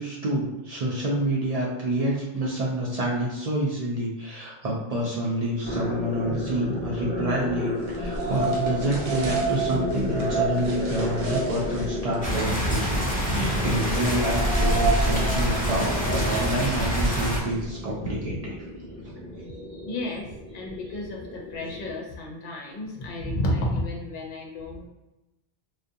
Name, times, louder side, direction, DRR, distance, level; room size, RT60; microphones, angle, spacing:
voice 1, 0.0-18.6 19.0-19.4, right 1 dB, 55° right, -5 dB, 0.4 m, -28 dB
sound 1, 5.6-22.0, left 1 dB, 25° left, 1.1 m, -34 dB
sound 2, 7.8-17.8, right 3 dB, 80° right, 0.9 m, -29 dB
sound 3, 12.2-17.4, equal, 10° left, 0.5 m, -27 dB
voice 2, 18.0-18.3 19.8-24.9, left 1 dB, 60° left, -1 dB, 0.7 m, -32 dB
2.4 x 2.1 x 2.6 m, 1.0 s
omnidirectional pair, 1.1 m